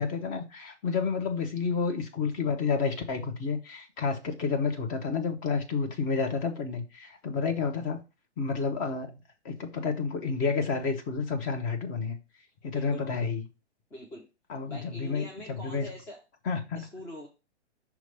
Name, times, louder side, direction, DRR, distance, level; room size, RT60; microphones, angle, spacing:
voice 1, 0.0-8.0 8.4-9.2 9.4-12.2 12.6-13.4 14.5-15.9 16.4-16.8, left 5 dB, 25° left, 1.1 m, -30 dB
voice 2, 12.7-13.3 13.9-14.2 14.7-16.2 16.7-17.3, left 1 dB, 5° left, 0.4 m, -43 dB
5.9 x 3.2 x 5.4 m
figure-of-eight pair, 115°, 35 cm